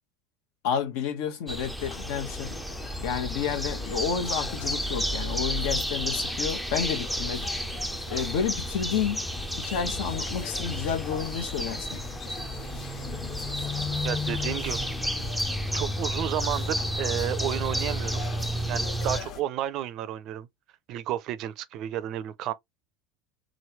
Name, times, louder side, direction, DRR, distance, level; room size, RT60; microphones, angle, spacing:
voice 1, 0.6-2.5 3.0-7.5 8.1-9.2 9.6-12.0, left 7 dB, 75° left, 1.1 m, -30 dB
sound 1, 1.5-19.2, equal, ahead, 0.5 m, -31 dB
sound 2, 1.8-19.4, left 6 dB, 45° left, 1.2 m, -42 dB
voice 2, 14.0-14.8 15.7-18.2 18.7-20.5 20.9-22.5, right 12 dB, 50° right, 0.5 m, -32 dB
3.8 x 3.2 x 2.9 m
supercardioid pair, 130°, 0 cm